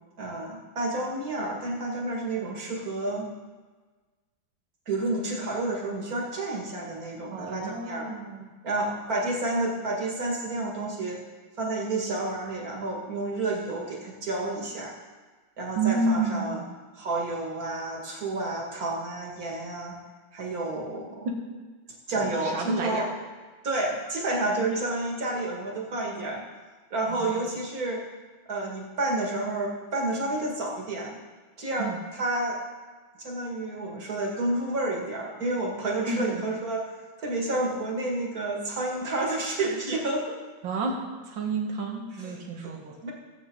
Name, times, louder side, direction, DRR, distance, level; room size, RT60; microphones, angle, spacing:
voice 1, 0.2-3.3 4.9-8.1 8.6-11.2 11.6-15.0 15.6-16.6 16.9-19.9 20.3-21.3 22.1-23.1 23.6-26.4 26.9-28.0 28.5-31.1 31.6-32.6 33.2-36.9 37.2-40.4 42.6-43.1, right 2 dB, 50° right, -2 dB, 2.5 m, -30 dB
voice 2, 7.3-8.5 15.8-16.6 21.2-21.3 22.2-23.1 27.1-27.5 31.8-32.0 36.1-36.5 40.6-41.0 41.3-43.0, right 3 dB, 80° right, 1 dB, 2.2 m, -30 dB
16.5 x 8.2 x 3.9 m, 1.4 s
omnidirectional pair, 2.1 m